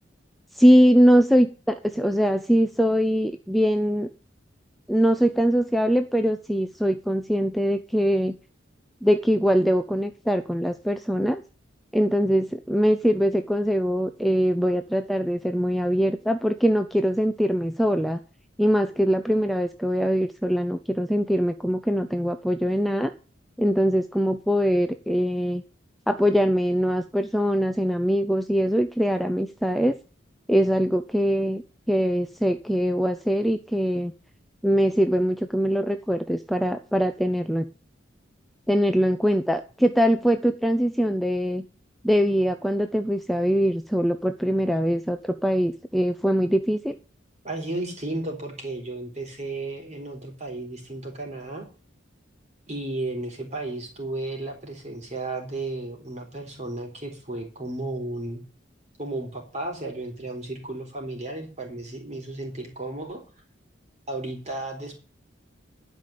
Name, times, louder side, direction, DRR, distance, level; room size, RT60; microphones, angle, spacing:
voice 1, 0.5-4.1 4.9-8.4 9.0-11.4 11.9-18.2 18.6-23.1 23.6-25.6 26.1-30.0 30.5-31.6 31.9-34.1 34.6-37.6 38.7-41.7 42.0-47.0, equal, ahead, 7 dB, 0.5 m, -22 dB
voice 2, 47.4-51.7 52.7-58.4 59.0-63.2 64.1-65.0, right 2 dB, 35° right, 1 dB, 4.1 m, -33 dB
12.0 x 5.2 x 8.5 m, 0.37 s
head